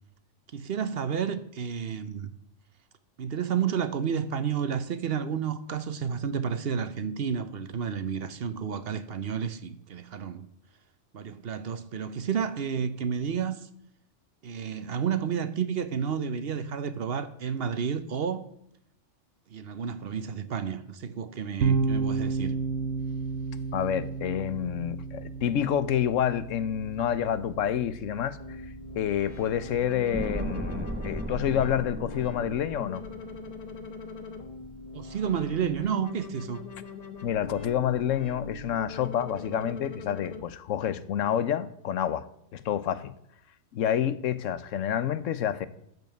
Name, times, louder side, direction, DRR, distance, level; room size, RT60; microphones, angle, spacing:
voice 1, 0.5-2.3 3.2-10.5 11.1-13.7 14.4-18.5 19.5-22.6 34.9-36.6, right 7 dB, 55° right, 0.9 m, -31 dB
sound 1, 21.6-31.0, right 5 dB, 80° right, 1.2 m, -33 dB
voice 2, 23.7-28.4 29.0-33.0 37.2-43.1 43.7-45.7, left 9 dB, 85° left, 1.1 m, -28 dB
sound 2, 28.4-40.4, left 4 dB, 35° left, 1.0 m, -42 dB
sound 3, 30.1-34.4 34.7-34.8, right 1 dB, 10° right, 0.8 m, -36 dB
14.0 x 5.4 x 7.7 m
omnidirectional pair, 1.3 m